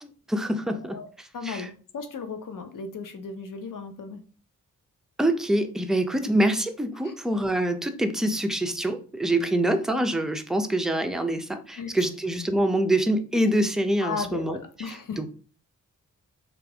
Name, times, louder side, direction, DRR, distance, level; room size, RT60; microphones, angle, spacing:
voice 1, 0.0-1.7 5.2-15.3, right 1 dB, ahead, 7 dB, 0.5 m, -25 dB
voice 2, 1.3-4.2 7.0-7.1 11.8-12.1 14.0-15.2, left 5 dB, 65° left, 8 dB, 0.7 m, -35 dB
3.2 x 2.5 x 3.4 m, 0.40 s
supercardioid pair, 40°, 35 cm